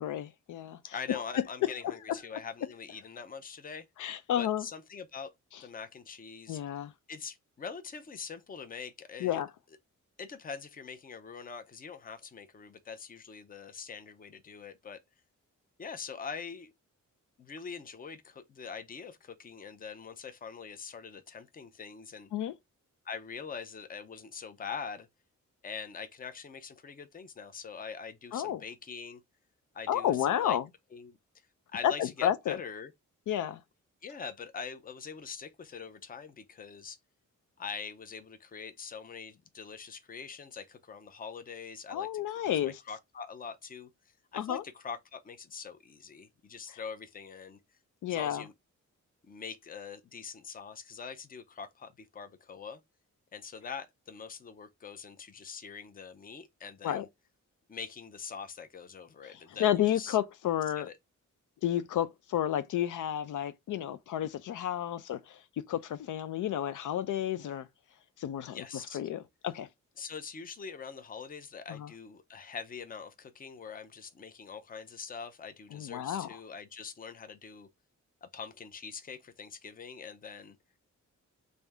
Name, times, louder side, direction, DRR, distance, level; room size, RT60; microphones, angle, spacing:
voice 1, 0.0-0.8 4.0-4.6 6.5-6.9 9.2-9.5 22.3-22.5 28.3-28.6 29.9-30.6 31.8-32.6 33.3-33.6 41.9-42.8 44.3-44.6 48.0-48.4 56.8-57.1 59.6-60.9 61.6-65.4 65.7-67.7 68.2-68.6 68.9-69.7 71.7-71.9 75.7-76.3, left 11 dB, 80° left, 0.5 m, -31 dB
voice 2, 0.9-3.9 4.4-5.3 5.6-6.6 7.1-9.4 10.2-15.0 15.8-16.7 17.4-22.3 23.0-25.1 25.6-29.2 29.7-30.6 30.9-31.2 31.7-32.9 34.0-37.0 37.6-43.9 44.3-47.6 48.1-48.5 49.2-52.8 53.3-57.1 57.7-60.2 60.8-61.0 68.5-69.0 70.0-77.7 78.2-80.6, left 6 dB, 30° left, 0.6 m, -43 dB
3.4 x 2.6 x 3.4 m
wide cardioid pair, 145°, 31 cm